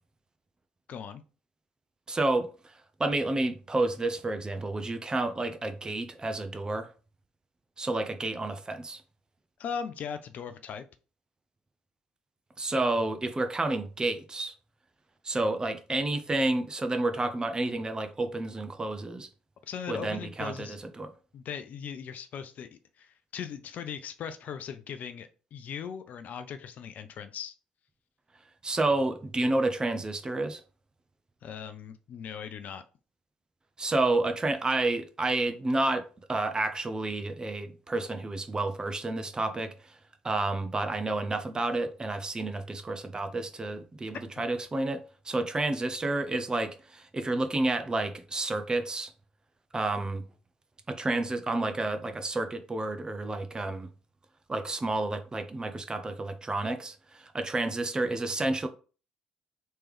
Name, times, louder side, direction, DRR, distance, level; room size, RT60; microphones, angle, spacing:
voice 1, 0.9-1.2 9.6-10.8 19.7-20.8 21.3-22.7 23.0-27.5 31.4-32.8 44.4-44.5, left 7 dB, 55° left, 0.4 m, -39 dB
voice 2, 2.1-2.7 3.0-6.9 7.8-9.0 12.6-14.5 15.2-19.3 19.9-21.1 28.6-30.6 33.8-40.0 40.2-45.0 45.3-49.1 49.7-50.2 50.9-53.9 54.5-58.7, right 2 dB, 25° right, 0.6 m, -30 dB
3.3 x 3.0 x 3.5 m
hypercardioid pair, 50°, 3 cm